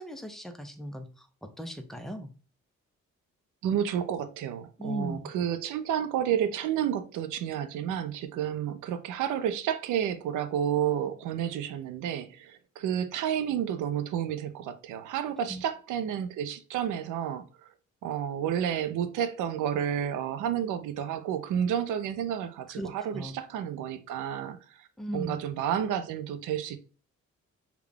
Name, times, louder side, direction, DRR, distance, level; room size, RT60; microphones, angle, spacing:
voice 1, 0.0-2.3 4.8-5.3 15.5-15.6 22.7-23.4 25.0-25.4, right 1 dB, ahead, 0.6 m, -38 dB
voice 2, 3.6-17.5 18.0-24.9 25.1-26.8, right 9 dB, 85° right, 0.6 m, -30 dB
3.5 x 2.3 x 3.5 m
cardioid pair, 90°, 30 cm